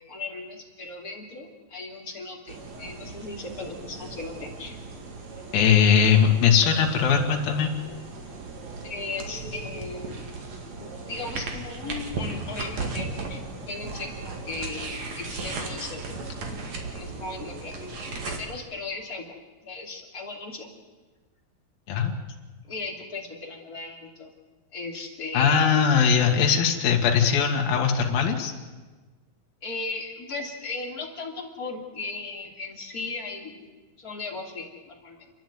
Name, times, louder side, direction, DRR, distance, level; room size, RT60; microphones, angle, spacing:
voice 1, 0.0-4.8 8.8-10.2 10.7-14.9 15.1-16.3 16.7-17.8 18.2-19.2 19.6-20.7 22.6-24.3 24.7-25.7 29.6-33.6 34.0-35.3, left 3 dB, 25° left, -1 dB, 3.1 m, -37 dB
sound 1, 2.5-18.4, right 3 dB, 50° right, 3.1 m, -37 dB
voice 2, 5.5-7.7 21.9-22.1 25.3-28.5, left 7 dB, 70° left, 1 dB, 3.6 m, -20 dB
30.0 x 11.0 x 9.5 m, 1.3 s
omnidirectional pair, 4.5 m